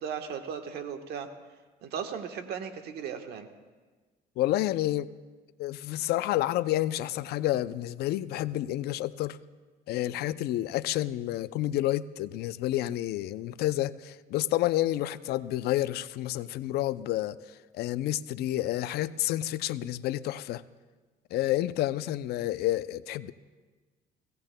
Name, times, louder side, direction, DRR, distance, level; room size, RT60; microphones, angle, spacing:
voice 1, 0.0-1.3 1.8-3.5, right 7 dB, 70° right, 6 dB, 1.2 m, -36 dB
voice 2, 4.4-5.1 5.6-9.4 9.9-20.6 21.3-23.3, left 14 dB, 75° left, 15 dB, 0.4 m, -29 dB
22.5 x 16.5 x 2.2 m, 1.3 s
cardioid pair, 110°, 17 cm